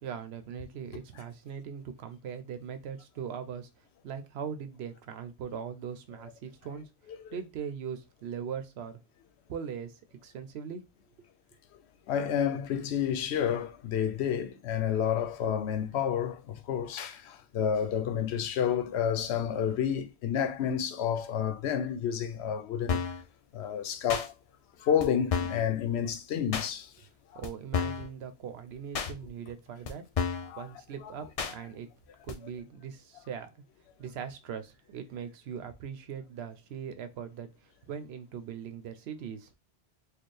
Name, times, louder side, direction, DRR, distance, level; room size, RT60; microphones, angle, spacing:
voice 1, 0.0-6.9 7.3-9.0 9.5-10.9 11.2-11.3 27.3-30.1 30.6-31.9 32.2-33.6 34.0-39.5, right 7 dB, 80° right, 0.8 m, -40 dB
voice 2, 12.1-23.0 23.5-24.3 24.8-26.9 30.5-30.6, left 8 dB, 85° left, 0.9 m, -30 dB
sound 1, 22.9-23.2 24.1-24.3 25.0-25.1 25.3-25.7 26.5-26.7 27.4-27.5 27.7-28.1 28.9-29.1 29.8-29.9 30.2-30.5 31.4-31.5 32.3-32.4, left 5 dB, 50° left, 0.4 m, -30 dB
4.3 x 2.3 x 3.2 m
omnidirectional pair, 1.1 m